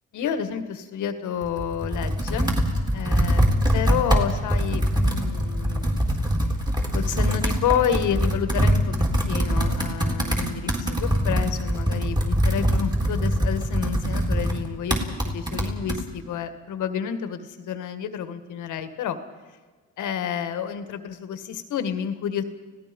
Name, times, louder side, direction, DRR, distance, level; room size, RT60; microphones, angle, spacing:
voice 1, 0.1-2.5 2.9-3.4 3.7-6.0 6.9-9.0 9.3-15.0 15.2-19.2 20.0-22.4, left 8 dB, 80° left, 9 dB, 1.8 m, -29 dB
Computer keyboard, 1.4-16.0, equal, 15° right, 3.9 m, -23 dB
30.0 x 17.5 x 5.3 m, 1.4 s
cardioid pair, 90°, 30 cm